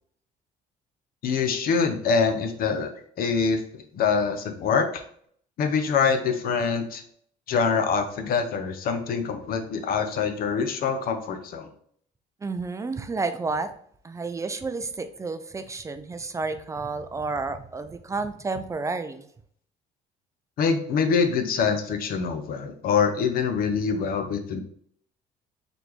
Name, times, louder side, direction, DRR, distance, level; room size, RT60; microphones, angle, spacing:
voice 1, 1.2-2.9 3.2-4.9 5.6-7.0 7.5-11.7 20.6-24.6, left 5 dB, 60° left, 7 dB, 0.7 m, -25 dB
voice 2, 12.4-13.7 14.0-19.2, right 3 dB, 20° right, 10 dB, 0.3 m, -31 dB
4.0 x 3.4 x 3.0 m, 0.62 s
cardioid pair, 110°, 17 cm